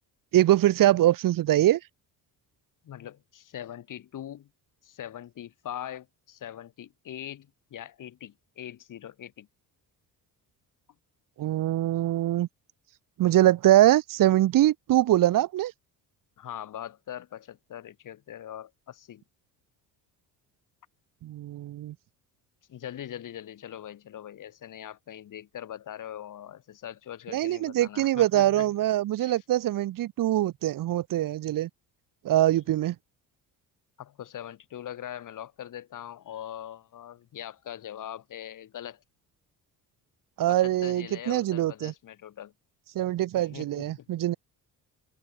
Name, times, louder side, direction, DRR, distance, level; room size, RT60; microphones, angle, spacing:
voice 1, 0.3-1.8 11.4-12.5 13.2-15.7 21.2-21.9 27.3-31.7 32.2-32.9 40.4-41.9 42.9-44.3, right 14 dB, 60° right, 1.2 m, -23 dB
voice 2, 2.8-4.5 4.8-9.5 16.4-19.2 22.7-28.7 29.2-29.4 34.0-39.0 40.5-42.5 43.3-44.1, left 11 dB, 55° left, 6.2 m, -41 dB
cardioid pair, 135°, 37 cm